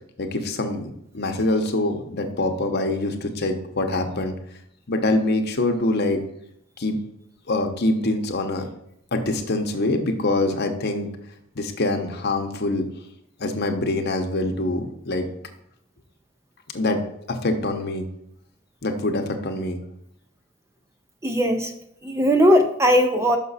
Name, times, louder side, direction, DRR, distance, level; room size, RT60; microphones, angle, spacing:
voice 1, 0.2-4.3 4.9-6.2 6.8-7.0 7.5-8.7 9.1-11.1 11.5-12.8 13.4-15.3 16.7-17.0 17.3-18.1 18.8-19.8, left 2 dB, 50° left, 4 dB, 0.9 m, -24 dB
voice 2, 21.2-21.7 22.0-23.4, equal, 15° right, 6 dB, 0.4 m, -18 dB
6.0 x 5.7 x 4.1 m, 0.76 s
head